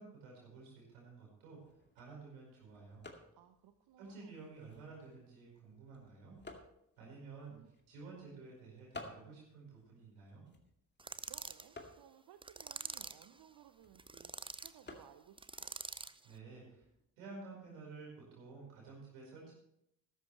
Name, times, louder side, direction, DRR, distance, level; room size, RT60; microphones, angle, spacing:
voice 1, 0.0-1.6 1.9-3.0 4.0-6.4 7.0-7.6 7.9-10.5 16.2-16.8 17.2-19.5, right 4 dB, 80° right, -3 dB, 5.0 m, -52 dB
sound 1, 1.5-17.0, left 2 dB, 25° left, 2.3 m, -58 dB
voice 2, 3.3-4.4 7.5-7.7 11.2-15.8, right 11 dB, 55° right, 8 dB, 0.9 m, -61 dB
sound 2, 11.0-11.7 12.4-13.3 14.0-14.7 15.4-16.2, right 3 dB, 10° right, 0.6 m, -45 dB
14.5 x 12.0 x 3.3 m, 0.79 s
hypercardioid pair, 45°, 43 cm